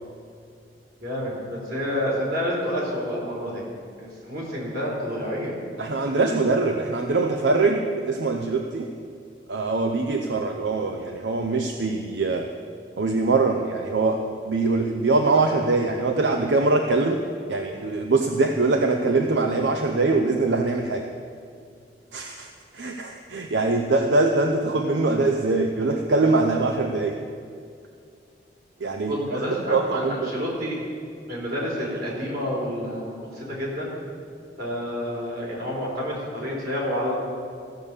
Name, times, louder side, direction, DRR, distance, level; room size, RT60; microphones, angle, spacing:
voice 1, 1.0-3.6 4.0-5.6 29.1-30.8 31.3-33.9 34.6-37.1, equal, 60° right, -4 dB, 3.9 m, -29 dB
voice 2, 5.8-8.9 9.5-12.5 13.0-17.2 17.5-21.1 22.1-22.5 22.7-27.2 28.8-29.4 29.7-30.3, right 3 dB, 85° right, 4 dB, 0.7 m, -23 dB
14.5 x 6.8 x 7.2 m, 2.3 s
head